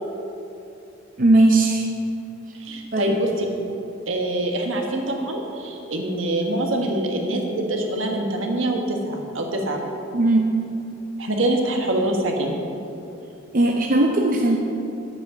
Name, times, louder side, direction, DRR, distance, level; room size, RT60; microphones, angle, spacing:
voice 1, 1.2-1.8 2.9-3.2 10.1-10.5 13.5-14.6, right 2 dB, 40° right, 0 dB, 0.7 m, -18 dB
voice 2, 2.6-3.5 4.1-9.8 11.2-12.6, right 1 dB, 70° right, 1 dB, 1.4 m, -24 dB
10.5 x 8.8 x 5.1 m, 2.8 s
head